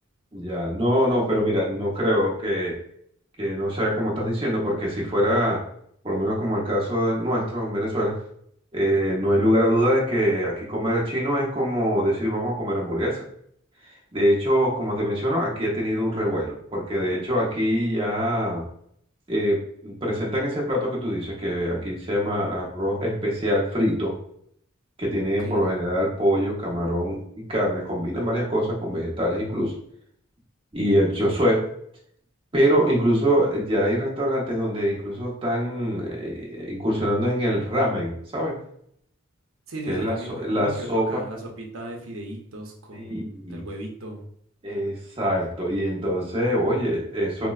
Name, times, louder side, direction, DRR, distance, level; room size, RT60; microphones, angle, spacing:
voice 1, 0.3-2.8 3.4-5.6 6.0-8.2 8.7-13.2 14.1-18.6 19.3-24.2 25.0-29.7 30.7-31.7 32.5-38.6 39.9-41.2 42.9-43.6 44.6-47.5, equal, 25° right, -3 dB, 0.7 m, -24 dB
voice 2, 39.7-44.2, right 1 dB, 75° right, 1 dB, 0.7 m, -37 dB
4.3 x 2.0 x 2.3 m, 0.68 s
head